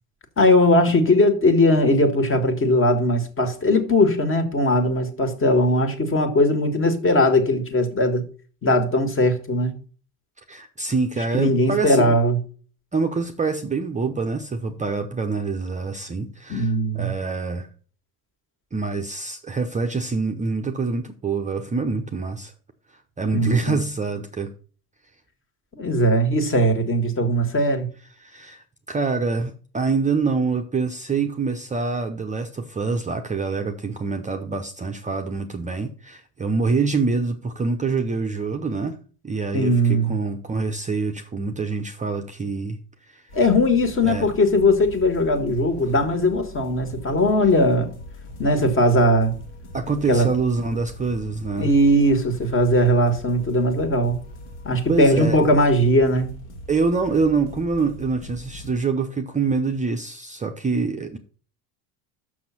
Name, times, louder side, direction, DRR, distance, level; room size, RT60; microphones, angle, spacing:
voice 1, 0.4-8.3 8.6-9.8 11.3-12.4 16.5-17.1 23.3-23.8 25.8-27.9 39.5-40.1 43.3-47.9 48.4-49.3 50.1-50.3 51.6-54.2 54.6-56.3, left 1 dB, 30° left, 1.8 m, -19 dB
voice 2, 10.5-12.2 12.9-17.7 18.7-22.5 22.9-24.5 28.2-39.0 39.2-43.3 44.0-44.3 49.7-51.7 54.9-55.4 56.7-61.2, right 4 dB, 15° right, 0.7 m, -25 dB
sound 1, 43.3-58.7, equal, 90° left, 2.5 m, -41 dB
6.3 x 6.0 x 5.8 m
supercardioid pair, 105°, 43 cm